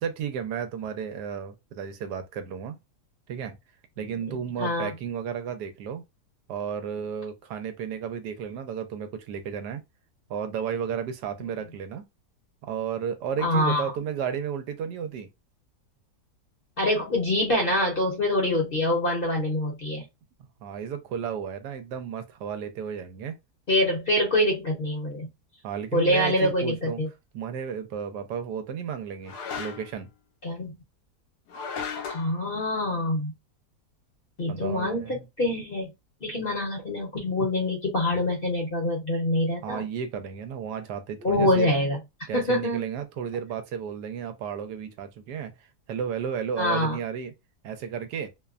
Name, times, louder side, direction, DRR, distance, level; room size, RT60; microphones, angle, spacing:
voice 1, 0.0-2.8 3.3-3.6 4.0-6.0 6.5-9.8 10.3-12.1 12.6-15.3 20.6-23.4 25.6-27.0 27.3-30.1 34.5-35.2 39.6-41.7 42.3-45.5 45.9-47.3 47.6-48.3, right 7 dB, 80° right, 1.2 m, -33 dB
voice 2, 4.1-4.9 13.4-13.9 16.8-20.1 23.7-25.3 25.9-27.1 30.4-30.8 32.0-33.3 34.4-35.9 36.2-39.8 41.2-42.0 42.3-42.8 46.6-47.0, left 1 dB, 45° left, 0.8 m, -25 dB
sound 1, 26.1-26.3 29.2-30.0 31.5-32.3, left 6 dB, 80° left, 1.2 m, -36 dB
2.9 x 2.1 x 2.4 m
omnidirectional pair, 1.8 m